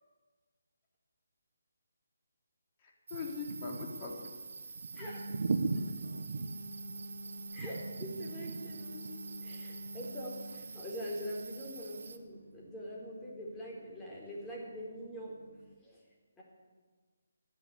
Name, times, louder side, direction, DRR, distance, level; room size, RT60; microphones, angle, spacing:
voice 1, 2.8-4.3, left 5 dB, 30° left, 0 dB, 3.4 m, -41 dB
sound 1, 3.1-12.2, right 4 dB, 60° right, 1.3 m, -40 dB
voice 2, 4.9-5.4 7.5-15.3 15.8-16.0 16.4-16.5, equal, 10° left, -4 dB, 4.2 m, -43 dB
sound 2, 4.9-15.7, equal, 85° right, 1.5 m, -49 dB
13.0 x 10.5 x 9.8 m, 1.4 s
figure-of-eight pair, 155°, 0 cm